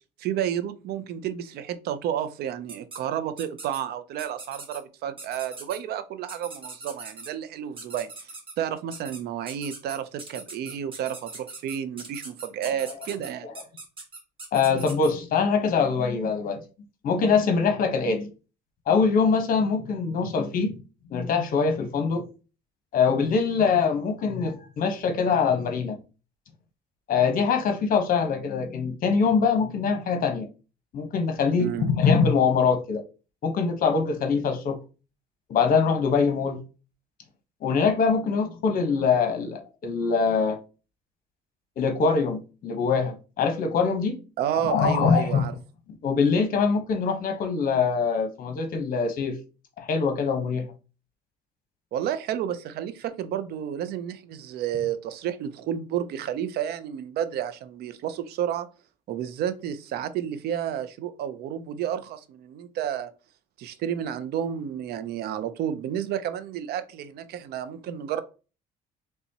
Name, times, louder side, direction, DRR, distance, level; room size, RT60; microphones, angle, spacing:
voice 1, 0.2-13.5 31.6-31.9 44.4-45.5 51.9-58.7 59.1-63.1 63.6-68.2, right 10 dB, 70° right, 0.5 m, -31 dB
sound 1, 2.7-3.0 3.4-3.8 4.2-4.8 5.2-5.8 6.3-7.3 7.8-8.5 8.9-9.2 9.5-15.1, right 3 dB, 30° right, 1.5 m, -41 dB
voice 2, 14.5-16.6 17.0-18.3 18.9-20.8 21.1-22.2 22.9-26.0 27.1-30.5 30.9-33.0 33.4-34.8 35.5-36.6 37.6-40.6 41.8-44.2 44.6-45.4 46.0-49.4 49.8-50.7, left 5 dB, 55° left, 1.0 m, -23 dB
4.1 x 3.4 x 2.8 m
cardioid pair, 110°, 17 cm